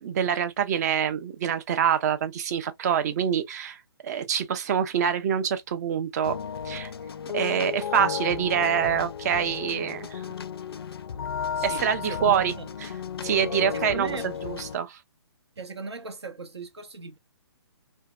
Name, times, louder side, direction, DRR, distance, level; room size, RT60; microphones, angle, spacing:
voice 1, 0.0-6.4 6.6-6.9 7.3-10.2 11.6-12.5 12.8-12.9 13.2-14.2 14.4-15.0, right 8 dB, 40° right, 0.5 m, -26 dB
sound 1, 6.2-14.8, left 8 dB, 65° left, 0.4 m, -34 dB
voice 2, 11.5-12.7 13.7-14.3 15.6-17.2, right 4 dB, 80° right, 0.8 m, -38 dB
2.7 x 2.1 x 2.2 m
figure-of-eight pair, 135°, 14 cm